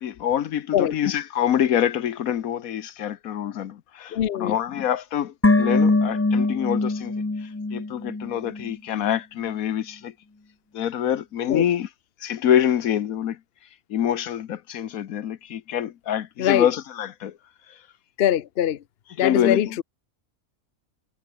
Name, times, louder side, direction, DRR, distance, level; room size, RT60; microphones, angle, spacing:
voice 1, 0.0-7.1 7.4-10.1 10.7-11.9 12.2-13.4 13.9-17.4 17.7-17.8 19.2-19.8, left 10 dB, 75° left, 1.3 m, -26 dB
voice 2, 4.1-4.6 11.5-11.6 16.4-16.7 18.2-18.8 19.2-19.8, left 10 dB, 50° left, 0.8 m, -22 dB
sound 1, 5.4-8.7 9.0-9.1, left 2 dB, 20° left, 0.4 m, -22 dB
omnidirectional pair, 1.5 m